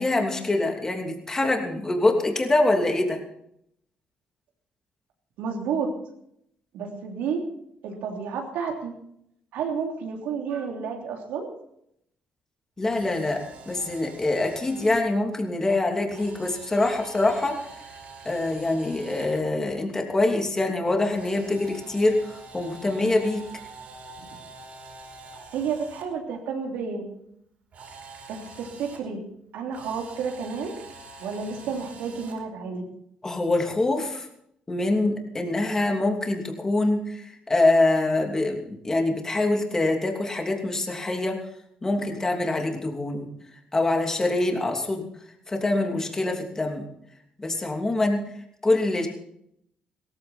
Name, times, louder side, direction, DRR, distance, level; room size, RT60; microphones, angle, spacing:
voice 1, 0.0-3.2 12.8-17.6 18.2-23.4 33.2-34.3 34.7-41.4 41.8-43.3 43.7-45.0 45.5-46.8 47.4-48.2 48.6-49.1, left 2 dB, 20° left, 2 dB, 2.9 m, -24 dB
voice 2, 5.4-5.9 6.7-7.4 7.8-8.9 9.5-11.5 24.2-24.3 25.5-27.0 28.3-29.2 29.5-30.7 31.2-32.8, right 6 dB, 85° right, 1 dB, 3.2 m, -31 dB
Camera, 12.8-15.0 16.1-19.4 21.1-26.0 27.7-29.0 29.7-32.4, right 3 dB, 60° right, 5.1 m, -45 dB
17.0 x 14.5 x 4.4 m, 0.74 s
cardioid pair, 100°, 3 cm